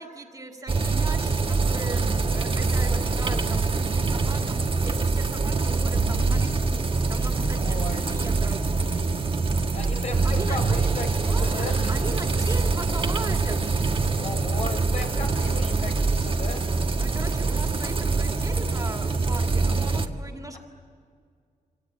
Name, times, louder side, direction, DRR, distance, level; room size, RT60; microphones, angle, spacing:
voice 1, 0.0-8.7 10.2-10.9 11.3-13.7 16.8-20.6, right 2 dB, 25° right, 3 dB, 2.5 m, -38 dB
sound 1, 0.7-20.1, right 4 dB, 40° right, 1.3 m, -24 dB
sound 2, 5.9-11.9, right 4 dB, 70° right, 2.0 m, -33 dB
voice 2, 7.6-8.0 9.7-12.3 14.2-16.8, left 3 dB, 55° left, 3 dB, 4.0 m, -36 dB
26.5 x 26.0 x 8.8 m, 2.1 s
wide cardioid pair, 130°, 14 cm